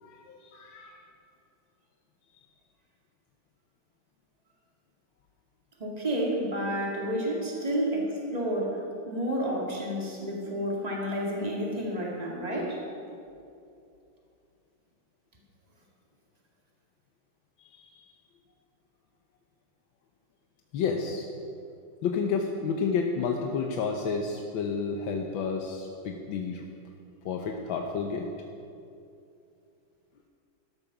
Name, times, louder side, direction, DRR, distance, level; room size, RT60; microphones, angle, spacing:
voice 1, 0.0-1.0 17.7-17.9 20.7-21.3 22.0-26.6 27.2-28.3, left 5 dB, 90° left, 3 dB, 1.7 m, -30 dB
voice 2, 5.8-12.8, equal, 20° right, -2 dB, 2.3 m, -30 dB
12.5 x 12.5 x 6.0 m, 2.5 s
omnidirectional pair, 2.1 m